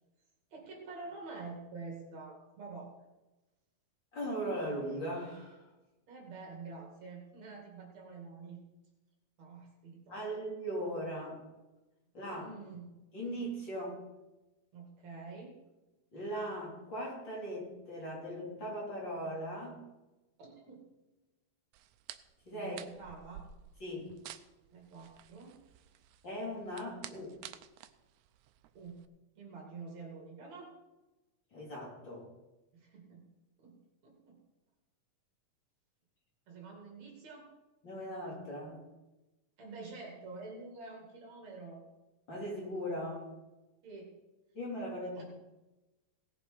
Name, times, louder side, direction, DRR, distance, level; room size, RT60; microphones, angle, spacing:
voice 1, 0.5-2.9 6.1-8.6 9.4-10.2 12.3-13.0 14.7-15.6 20.4-20.9 22.5-23.4 24.7-25.6 28.7-29.0 29.4-30.8 32.7-33.2 33.6-34.4 36.5-37.5 39.6-41.8 43.8-44.2 45.1-45.2, right 4 dB, 60° right, 0 dB, 3.4 m, -47 dB
voice 2, 4.1-5.6 10.1-11.4 12.1-12.5 13.1-14.0 16.1-19.8 22.5-22.8 23.8-24.1 26.2-27.4 31.5-32.3 37.8-38.8 42.3-43.3 44.5-45.2, equal, 35° left, -4 dB, 3.9 m, -39 dB
sound 1, 21.7-29.1, right 11 dB, 75° right, 1.9 m, -52 dB
17.5 x 7.2 x 5.1 m, 1.1 s
omnidirectional pair, 3.6 m